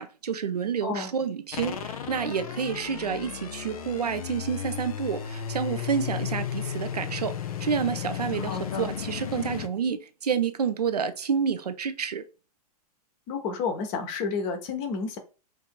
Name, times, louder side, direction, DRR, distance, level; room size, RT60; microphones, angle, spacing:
voice 1, 0.0-7.3 7.6-12.2, right 7 dB, 75° right, 0.5 m, -29 dB
voice 2, 0.8-1.1 8.3-8.9 13.3-15.2, left 5 dB, 40° left, 1.0 m, -31 dB
sound 1, 1.5-9.7, left 9 dB, 65° left, 0.6 m, -34 dB
4.7 x 2.8 x 2.3 m
figure-of-eight pair, 100°, 20 cm